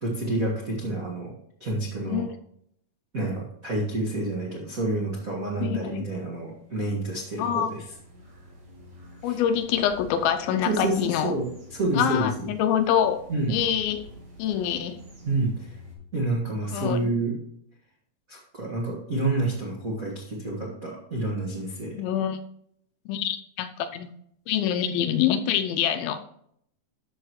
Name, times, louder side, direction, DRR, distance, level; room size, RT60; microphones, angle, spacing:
voice 1, 0.0-1.3 1.6-2.3 3.1-7.8 9.2-9.4 10.6-11.4 11.7-12.5 13.3-13.6 15.2-15.8 16.1-17.3 18.3-21.9, right 2 dB, 65° right, -4 dB, 0.8 m, -28 dB
voice 2, 5.6-6.0 7.4-7.7 9.2-11.3 12.0-13.2 13.5-14.0 14.4-15.0 16.7-17.1 22.0-22.4 23.1-24.1 24.5-26.3, left 9 dB, 80° left, 9 dB, 2.4 m, -25 dB
sound 1, 6.3-16.0, equal, 80° right, 4.8 m, -48 dB
12.5 x 5.7 x 3.1 m, 0.70 s
omnidirectional pair, 4.5 m